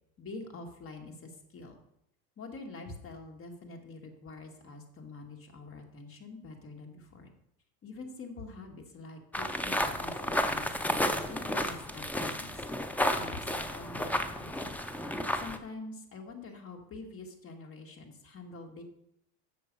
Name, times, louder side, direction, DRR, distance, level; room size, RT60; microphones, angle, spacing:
voice 1, 0.2-1.8 2.4-7.3 7.8-12.6 13.1-14.8 15.4-18.8, left 3 dB, 30° left, 3 dB, 1.6 m, -46 dB
sound 1, 9.3-15.6, left 1 dB, 5° left, 0.4 m, -32 dB
7.7 x 6.5 x 5.1 m, 0.78 s
supercardioid pair, 110°, 45 cm